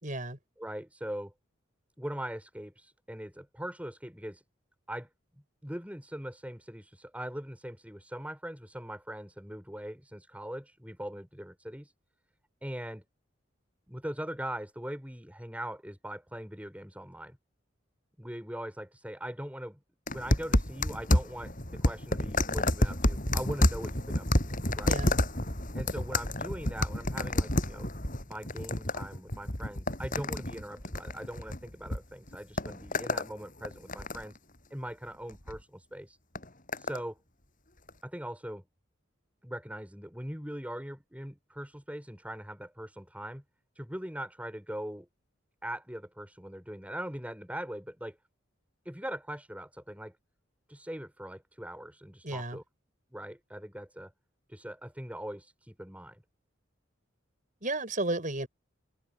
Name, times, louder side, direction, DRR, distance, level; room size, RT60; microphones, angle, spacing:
voice 1, 0.0-0.4 24.8-25.2 52.2-52.6 57.6-58.5, right 2 dB, 40° right, 6.7 m, -33 dB
voice 2, 0.6-1.3 2.0-4.4 4.9-5.1 5.6-11.9 12.6-13.0 13.9-17.4 18.2-19.8 20.1-25.0 25.7-27.9 28.3-34.4 34.7-36.2 36.8-37.2 38.0-38.6 39.4-43.4 43.7-45.1 45.6-48.2 48.8-50.1 50.7-52.6 53.1-54.1 54.5-56.2, equal, 5° right, 6.2 m, -41 dB
sound 1, 20.1-32.0 32.3-33.3 33.6-34.4 35.3-35.6 36.3-37.0 37.9-38.0, left 1 dB, 45° left, 7.6 m, -29 dB
head